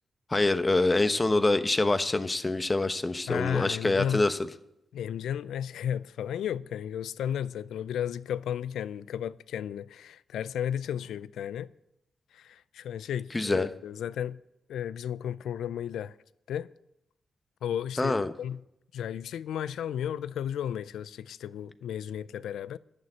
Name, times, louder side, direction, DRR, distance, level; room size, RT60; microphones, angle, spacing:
voice 1, 0.3-4.4 13.3-13.7 18.0-18.3, left 2 dB, 30° left, 1.1 m, -25 dB
voice 2, 3.3-4.3 4.9-11.7 12.3-14.4 14.7-16.1 16.5-16.7 17.6-18.6 18.9-22.8, left 9 dB, 80° left, 0.3 m, -33 dB
11.0 x 6.7 x 9.1 m
supercardioid pair, 45°, 0 cm